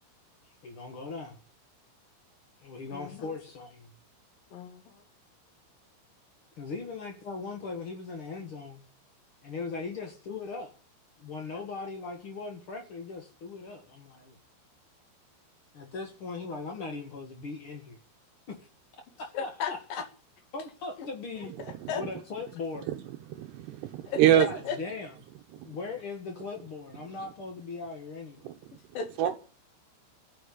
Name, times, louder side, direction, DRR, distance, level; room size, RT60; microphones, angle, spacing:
voice 1, 0.6-1.4 2.6-3.9 6.6-8.8 9.4-10.7 11.2-14.4 15.7-18.0 19.2-20.0 20.5-21.5 21.9-22.9 24.3-25.1 25.6-28.4, left 4 dB, 75° left, 1.2 m, -39 dB
voice 2, 2.9-3.3 4.5-5.0 19.3-20.0 21.0-21.1 21.4-22.0 24.1-24.8 28.7-29.4, left 7 dB, 55° left, 3.2 m, -36 dB
voice 3, 23.3-24.5 25.5-25.6 28.4-28.5 29.2-29.3, right 11 dB, 80° right, 2.5 m, -24 dB
15.0 x 10.5 x 8.6 m
omnidirectional pair, 5.9 m